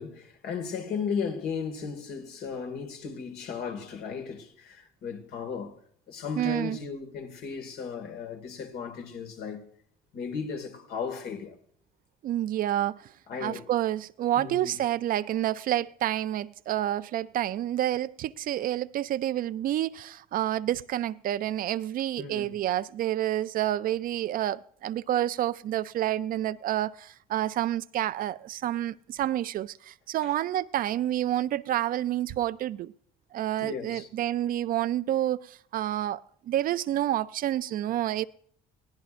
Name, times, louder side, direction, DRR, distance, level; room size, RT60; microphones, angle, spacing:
voice 1, 0.0-5.8 6.1-9.6 10.1-11.5 13.3-13.7 14.3-14.8 22.2-22.6 33.6-34.1, left 6 dB, 70° left, 2.0 m, -35 dB
voice 2, 6.4-6.8 12.2-13.1 13.4-32.9 33.3-38.2, right 12 dB, 55° right, 0.4 m, -29 dB
21.0 x 16.5 x 2.5 m
cardioid pair, 110°, 17 cm